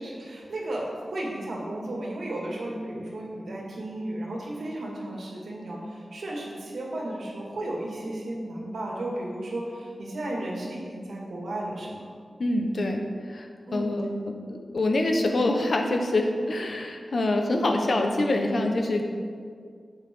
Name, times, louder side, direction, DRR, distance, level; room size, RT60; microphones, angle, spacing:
voice 1, 0.0-12.0 13.7-13.9, right 1 dB, 90° right, -3 dB, 2.1 m, -34 dB
voice 2, 12.4-13.0 13.3-19.0, left 2 dB, 60° left, 3 dB, 1.1 m, -25 dB
10.5 x 8.3 x 3.8 m, 2.1 s
wide cardioid pair, 100°, 0 cm